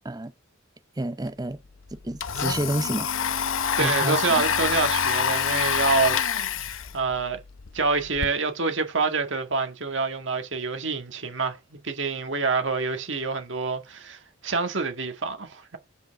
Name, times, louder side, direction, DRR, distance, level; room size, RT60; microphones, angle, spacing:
voice 1, 1.0-1.6 1.9-3.1 3.8-4.4, right 1 dB, 20° right, 0.5 m, -29 dB
Domestic sounds home sounds, 1.3-1.4 1.7-8.3, left 7 dB, 80° left, 0.8 m, -27 dB
voice 2, 3.8-6.2 6.6-7.4 7.7-15.8, right 4 dB, 65° right, 1.8 m, -27 dB
9.2 x 5.6 x 3.7 m
head